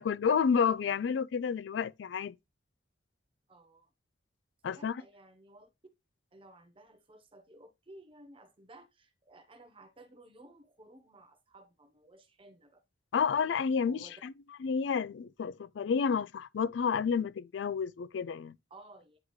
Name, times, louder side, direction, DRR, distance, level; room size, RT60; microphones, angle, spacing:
voice 1, 0.0-2.3 4.6-5.0 13.1-14.3 14.6-18.6, left 6 dB, 70° left, 0.4 m, -30 dB
voice 2, 3.5-3.9 4.6-5.7 6.3-12.8 13.9-14.2 18.7-19.2, right 2 dB, 30° right, 0.9 m, -56 dB
9.6 x 3.6 x 3.1 m
head